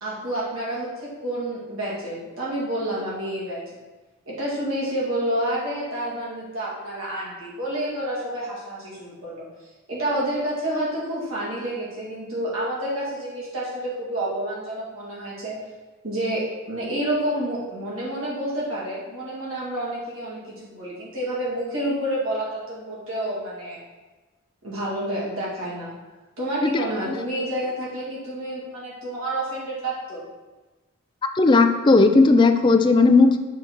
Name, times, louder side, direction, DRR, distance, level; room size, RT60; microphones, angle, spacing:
voice 1, 0.0-3.8 4.3-9.5 9.9-15.6 16.0-23.8 24.6-25.9 26.4-30.2, right 1 dB, 75° right, -6 dB, 2.0 m, -29 dB
voice 2, 26.6-27.2 31.4-33.4, left 3 dB, 20° left, 7 dB, 0.4 m, -16 dB
7.1 x 3.9 x 4.5 m, 1.2 s
head